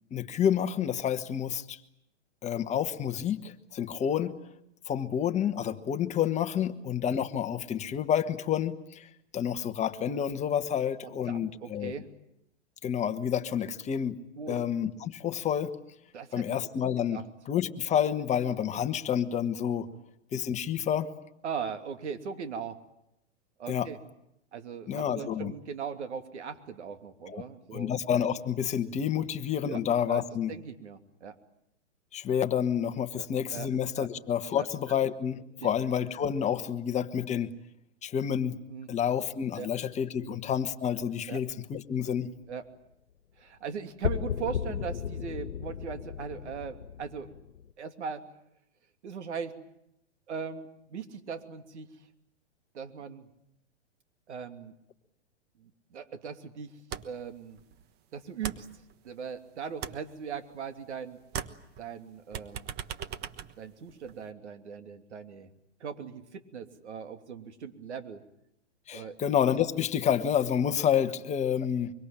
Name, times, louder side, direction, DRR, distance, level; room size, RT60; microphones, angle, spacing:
voice 1, 0.1-1.8 2.4-4.3 4.9-9.1 9.3-11.9 12.8-14.2 14.5-15.7 16.3-17.2 17.5-19.9 20.3-21.1 23.7-23.9 24.9-25.5 27.3-27.4 27.7-30.5 32.1-37.5 38.0-38.6 38.9-42.3 68.9-71.9, left 9 dB, 20° left, 8 dB, 1.4 m, -29 dB
voice 2, 10.7-12.1 14.4-14.6 16.1-16.5 17.1-17.2 19.9-20.0 21.4-22.8 23.6-24.0 24.5-28.0 29.2-29.3 29.7-29.8 30.1-31.3 33.2-33.3 33.5-33.7 34.0-34.1 34.6-35.0 35.6-35.7 38.7-38.9 39.6-39.7 40.2-40.4 41.3-41.4 42.5-42.7 43.4-47.3 47.8-48.3 49.0-49.6 50.3-52.0 52.7-53.3 54.3-54.7 55.6-57.6 58.1-58.7 59.0-61.2 61.8-62.7 63.6-65.5 65.8-68.2 68.9-69.2, right 6 dB, 70° right, 7 dB, 2.9 m, -39 dB
sound 1, 44.0-47.7, left 8 dB, 75° left, 1.5 m, -35 dB
sound 2, 56.9-57.3 57.6-59.4 59.6-61.0 61.2-64.3, right 9 dB, 30° right, 1.3 m, -40 dB
24.5 x 24.0 x 9.0 m, 0.80 s
hypercardioid pair, 125°, 35 cm